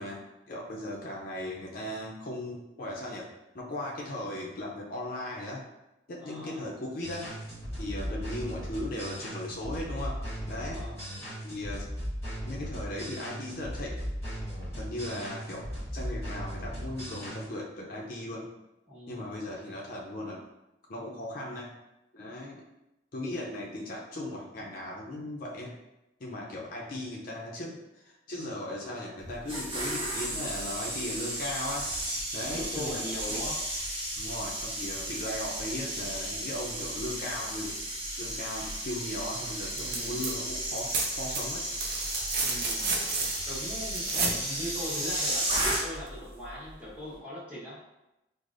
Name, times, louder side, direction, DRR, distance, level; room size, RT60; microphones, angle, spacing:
voice 1, 0.0-3.3 3.5-5.6 6.1-7.3 7.8-10.8 11.4-11.9 12.5-14.0 14.8-18.5 19.1-20.4 20.9-21.7 22.1-22.6 23.1-25.7 26.2-31.9 32.3-33.0 33.3-33.4 34.2-37.8 38.2-41.7, left 1 dB, 50° left, -3 dB, 0.5 m, -37 dB
voice 2, 6.2-6.7 10.5-11.0 18.9-19.4 32.5-33.6 39.7-40.2 42.4-42.9 43.5-47.8, equal, 10° right, -10 dB, 1.1 m, -40 dB
sound 1, 7.0-17.5, equal, 15° left, 1.2 m, -37 dB
sound 2, 29.2-46.2 46.4-46.7, right 1 dB, 30° right, 1.0 m, -34 dB
sound 3, 39.7-40.3 40.6-44.4 46.1-46.2, right 4 dB, 55° right, 0.5 m, -32 dB
4.8 x 2.0 x 2.5 m, 0.94 s
head